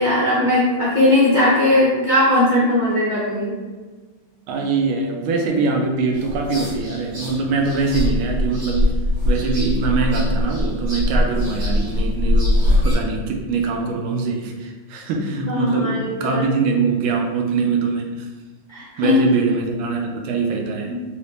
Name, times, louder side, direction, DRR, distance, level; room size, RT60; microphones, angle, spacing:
voice 1, 0.0-3.6 15.5-16.5 18.7-19.2, left 1 dB, 65° left, -7 dB, 0.4 m, -18 dB
voice 2, 4.5-8.9 9.2-18.3 19.0-21.0, right 4 dB, 85° right, 2 dB, 1.5 m, -23 dB
sound 1, 6.1-12.9, left 1 dB, 65° right, 2.2 m, -21 dB
4.1 x 2.9 x 3.2 m, 1.3 s
omnidirectional pair, 2.3 m